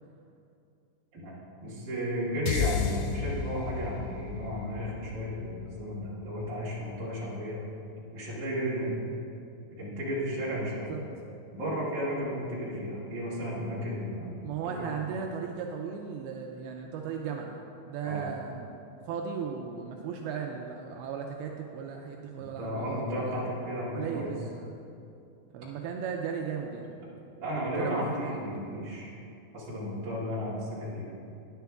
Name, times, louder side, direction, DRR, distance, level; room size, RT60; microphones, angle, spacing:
voice 1, 1.6-7.6 8.1-8.9 9.8-10.9 11.5-15.0 18.0-18.2 22.4-24.3 27.4-29.1 29.5-31.1, equal, 35° right, -8 dB, 2.2 m, -34 dB
sound 1, 2.5-6.8, left 7 dB, 85° left, 2.9 m, -34 dB
voice 2, 14.4-17.6 17.9-18.7 19.1-23.4 23.9-24.7 25.5-27.0 27.8-28.4, right 6 dB, 90° right, 1 dB, 2.2 m, -36 dB
10.0 x 9.3 x 3.5 m, 2.6 s
omnidirectional pair, 5.1 m